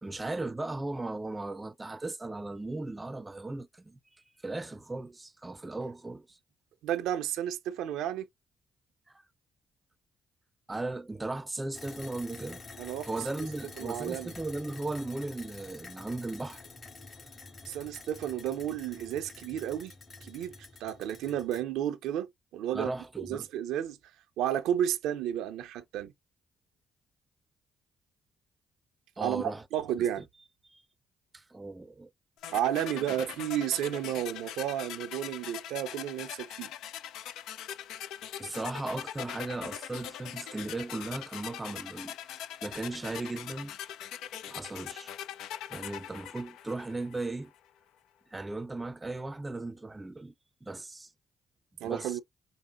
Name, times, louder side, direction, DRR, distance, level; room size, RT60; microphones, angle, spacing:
voice 1, 0.0-4.0 4.4-6.4 9.1-9.2 10.7-12.6 13.1-16.6 22.7-23.5 29.2-29.6 30.0-30.2 30.7-30.8 31.3-32.1 38.4-42.2 42.6-43.8 44.5-45.1 45.7-47.5 48.3-50.3 50.6-51.1 51.8-52.2, right 2 dB, 20° right, 0.5 m, -37 dB
voice 2, 6.8-8.3 12.8-13.1 13.4-13.5 13.8-14.3 17.7-19.9 20.2-20.6 20.8-22.9 23.2-24.0 24.4-26.1 29.2-30.2 32.5-36.7 51.8-52.2, right 11 dB, 80° right, 0.4 m, -32 dB
sound 1, 11.7-21.6, left 3 dB, 45° left, 2.3 m, -48 dB
sound 2, 32.4-47.3, left 10 dB, 80° left, 0.3 m, -42 dB
5.1 x 2.0 x 2.3 m
supercardioid pair, 55°, 0 cm